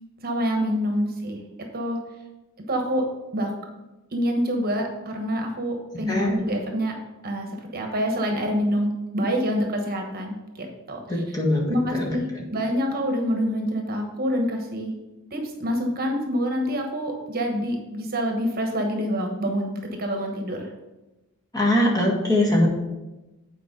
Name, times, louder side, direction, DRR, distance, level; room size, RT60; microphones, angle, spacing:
voice 1, 0.2-1.4 1.7-2.0 2.7-3.0 3.3-3.5 4.1-7.0 7.2-11.0 11.7-14.9 15.3-20.7, equal, 45° right, 2 dB, 1.2 m, -26 dB
voice 2, 6.1-6.4 11.1-12.1 21.5-22.7, left 1 dB, 15° left, -3 dB, 1.8 m, -22 dB
8.7 x 4.7 x 5.2 m, 1.1 s
head